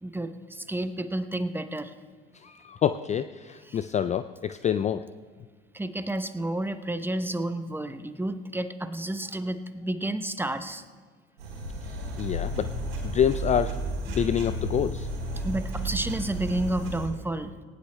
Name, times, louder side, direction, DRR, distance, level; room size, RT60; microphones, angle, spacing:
voice 1, 0.0-1.9 3.7-3.8 5.7-10.8 15.4-17.6, right 1 dB, 5° right, 10 dB, 0.7 m, -31 dB
voice 2, 2.3-5.0 12.2-12.7 13.0-13.8 14.1-15.1, left 9 dB, 25° left, 12 dB, 0.3 m, -27 dB
sound 1, 11.4-17.1, right 1 dB, 90° right, 3.9 m, -33 dB
18.5 x 17.0 x 2.2 m, 1.5 s
hypercardioid pair, 70°, 29 cm